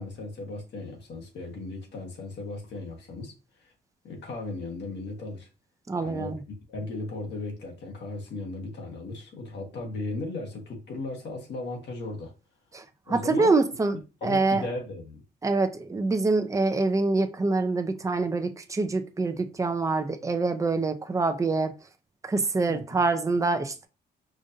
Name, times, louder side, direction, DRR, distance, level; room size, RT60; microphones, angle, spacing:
voice 1, 0.0-3.3 3.6-3.7 4.0-5.5 6.0-6.3 6.7-12.3 13.1-13.5 14.2-15.2 22.7-23.0, left 2 dB, 75° left, 1.4 m, -36 dB
voice 2, 5.9-6.4 12.7-14.0 14.2-14.7 15.4-21.7 22.2-23.9, right 3 dB, 15° right, 0.5 m, -25 dB
5.0 x 2.6 x 2.7 m
cardioid pair, 90°, 18 cm